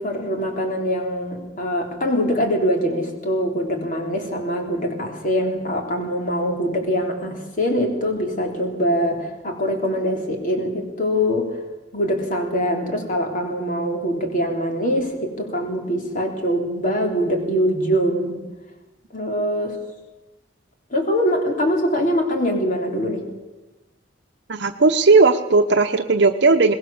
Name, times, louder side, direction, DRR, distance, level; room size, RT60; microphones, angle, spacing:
voice 1, 0.0-11.6 11.9-18.4 19.1-19.8 20.9-23.2, equal, 45° left, 2 dB, 3.6 m, -23 dB
voice 2, 24.5-26.7, right 3 dB, 65° right, 6 dB, 0.9 m, -16 dB
22.5 x 20.0 x 7.1 m, 1.1 s
head